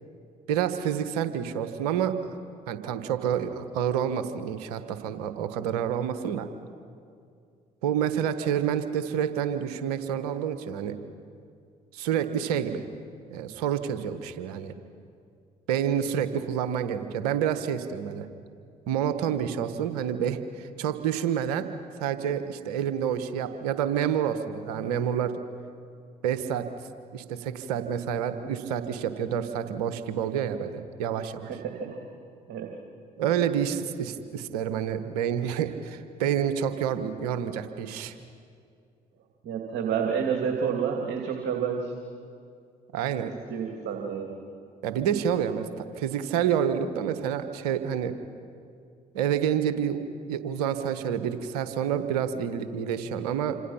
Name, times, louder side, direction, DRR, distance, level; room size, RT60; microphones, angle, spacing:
voice 1, 0.5-2.2 2.7-6.5 7.8-11.0 11.9-12.8 13.3-14.7 15.7-18.3 18.9-21.7 22.0-25.4 26.2-26.7 27.1-31.5 33.2-38.2 42.9-43.3 44.8-48.1 49.1-53.6, right 9 dB, 80° right, 10 dB, 1.3 m, -28 dB
voice 2, 31.4-32.0 32.5-32.7 39.4-41.9 43.5-44.4, right 7 dB, 65° right, 2 dB, 2.6 m, -29 dB
27.5 x 26.0 x 5.8 m, 2.4 s
hypercardioid pair, 50°, 19 cm